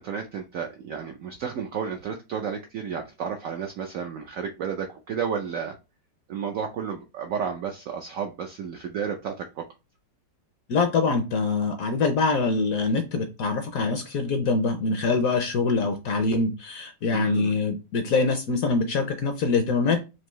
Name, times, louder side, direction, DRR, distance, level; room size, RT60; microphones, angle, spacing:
voice 1, 0.0-5.8 6.3-9.6 17.1-17.5, right 7 dB, 75° right, 4 dB, 0.7 m, -32 dB
voice 2, 10.7-20.0, left 4 dB, 70° left, 7 dB, 0.9 m, -24 dB
4.6 x 2.6 x 3.0 m, 0.28 s
omnidirectional pair, 1.9 m